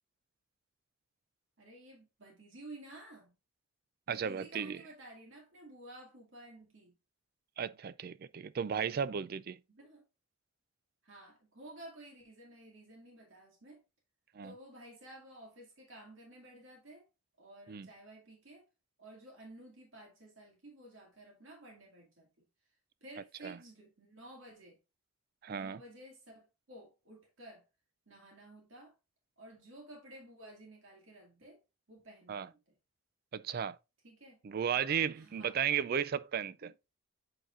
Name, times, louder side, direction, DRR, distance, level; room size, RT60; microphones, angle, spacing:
voice 1, 1.6-3.3 4.1-6.9 9.7-10.0 11.0-13.8 14.4-17.1 17.4-18.7 19.0-22.4 23.0-24.8 25.5-27.6 28.1-28.9 29.4-31.6 31.9-32.6 34.0-34.4 35.1-35.6 36.6-36.7, right 1 dB, 65° right, 2.1 m, -53 dB
voice 2, 4.1-4.8 7.6-9.6 14.3-14.5 17.7-17.9 23.4-23.6 25.4-25.8 32.3-32.5 33.3-33.8 34.4-36.7, right 7 dB, 45° right, 0.3 m, -34 dB
8.0 x 4.8 x 2.5 m
head